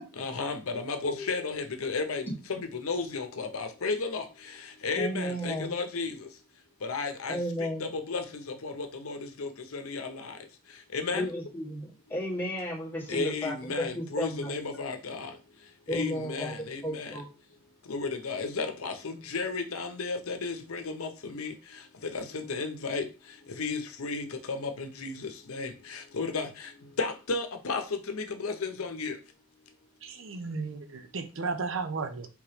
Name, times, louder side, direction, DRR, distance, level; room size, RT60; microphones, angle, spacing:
voice 1, 0.2-4.3 4.8-6.2 6.8-7.4 7.8-10.3 10.9-11.3 13.1-15.3 15.9-17.1 17.9-21.5 22.1-23.1 23.6-26.7 27.0-29.1, left 4 dB, 90° left, 0.7 m, -33 dB
voice 2, 5.0-5.7 7.3-7.9 11.1-14.5 15.9-16.5 16.8-17.3, equal, 10° left, 1.3 m, -34 dB
voice 3, 30.0-32.3, right 4 dB, 65° right, 0.6 m, -34 dB
3.5 x 3.0 x 4.8 m
head